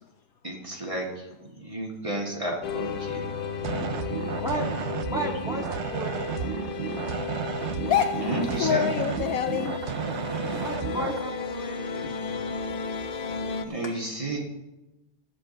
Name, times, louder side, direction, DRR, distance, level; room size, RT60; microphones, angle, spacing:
voice 1, 0.4-1.3 1.6-3.3 8.2-8.9 13.6-14.4, right 1 dB, 20° right, -2 dB, 1.8 m, -32 dB
sound 1, 2.6-13.6, left 6 dB, 85° left, 0.4 m, -33 dB
sound 2, 3.6-11.2, right 9 dB, 75° right, 0.6 m, -33 dB
voice 2, 4.4-4.7 5.1-6.5 10.6-11.9, right 1 dB, ahead, -2 dB, 1.8 m, -33 dB
voice 3, 7.8-8.3 8.6-9.7 12.0-12.4 13.8-13.9, left 8 dB, 70° left, 7 dB, 1.0 m, -26 dB
13.5 x 5.1 x 7.6 m, 1.1 s
omnidirectional pair, 1.7 m